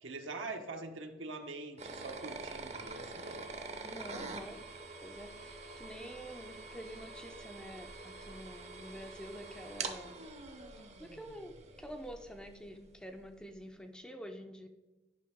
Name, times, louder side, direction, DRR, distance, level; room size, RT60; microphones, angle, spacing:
voice 1, 0.0-3.5, right 3 dB, 75° right, 5 dB, 1.0 m, -44 dB
sound 1, 1.8-12.6, right 3 dB, 35° right, 0.7 m, -45 dB
voice 2, 3.8-4.7 5.0-10.3 11.0-14.7, equal, 5° left, 5 dB, 0.5 m, -48 dB
10.5 x 5.7 x 3.5 m, 1.1 s
head